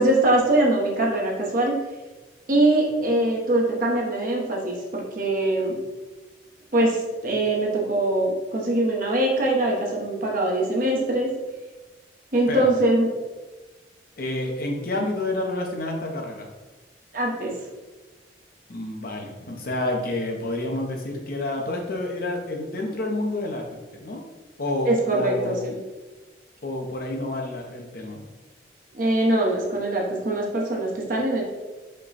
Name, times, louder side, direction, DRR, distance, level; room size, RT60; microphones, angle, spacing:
voice 1, 0.0-1.7 2.5-5.8 6.7-11.3 12.3-13.1 17.1-17.6 24.9-25.8 28.9-31.4, right 1 dB, 45° right, -2 dB, 1.0 m, -22 dB
voice 2, 14.2-16.5 18.7-23.7 23.9-24.2 24.6-25.6 26.6-28.2, left 2 dB, 50° left, 1 dB, 0.7 m, -29 dB
5.3 x 2.3 x 4.1 m, 1.2 s
head